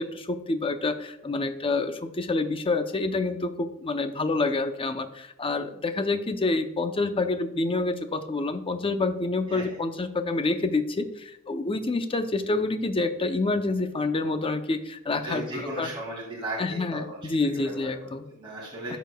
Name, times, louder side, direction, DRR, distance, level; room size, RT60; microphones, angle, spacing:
voice 1, 0.0-15.9 16.6-18.3 18.9-19.0, left 3 dB, 25° left, 8 dB, 0.5 m, -28 dB
voice 2, 15.2-18.1 18.4-19.0, right 1 dB, 25° right, -5 dB, 2.3 m, -36 dB
13.5 x 5.1 x 2.2 m, 0.83 s
head